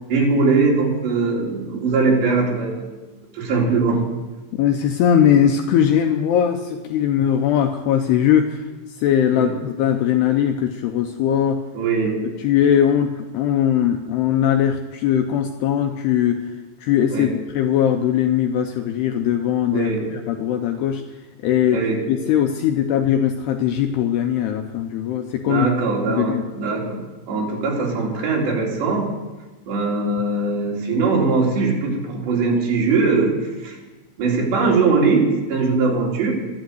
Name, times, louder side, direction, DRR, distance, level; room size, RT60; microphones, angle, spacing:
voice 1, 0.1-2.9 3.3-4.0 9.3-9.5 11.7-12.3 17.1-17.3 19.7-20.0 21.7-22.0 25.4-29.1 29.7-33.8 34.2-36.3, right 4 dB, 65° right, -2 dB, 4.8 m, -21 dB
voice 2, 4.6-8.6 9.0-11.6 12.4-16.4 16.8-17.3 17.5-21.0 21.4-21.8 22.1-25.7 26.1-26.4, left 9 dB, 90° left, 5 dB, 2.4 m, -20 dB
13.0 x 12.0 x 7.9 m, 1.2 s
omnidirectional pair, 5.5 m